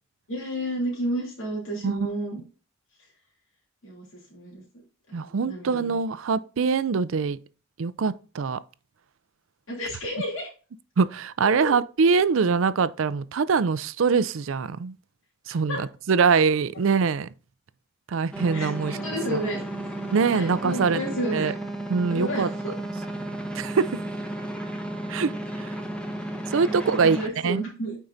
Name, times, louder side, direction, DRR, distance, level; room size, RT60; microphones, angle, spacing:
voice 1, 0.3-2.4 3.8-4.0 4.3-4.6 5.1-6.0 9.7-10.5 11.4-11.7 15.7-15.8 18.5-19.6 20.3-21.5 22.1-22.7 26.6-28.0, equal, 70° left, 3.0 m, -31 dB
voice 2, 5.1-7.4 7.8-8.6 11.0-14.9 15.5-17.3 18.1-19.0 19.3-19.4 20.1-21.0 21.3-21.5 21.9-22.5 23.5-24.0 25.1-25.3 25.6-25.8 26.5-27.2 27.4-27.6, right 5 dB, 70° right, 0.4 m, -23 dB
sound 1, 18.3-27.3, right 1 dB, 5° left, 0.9 m, -33 dB
8.6 x 4.6 x 2.7 m
head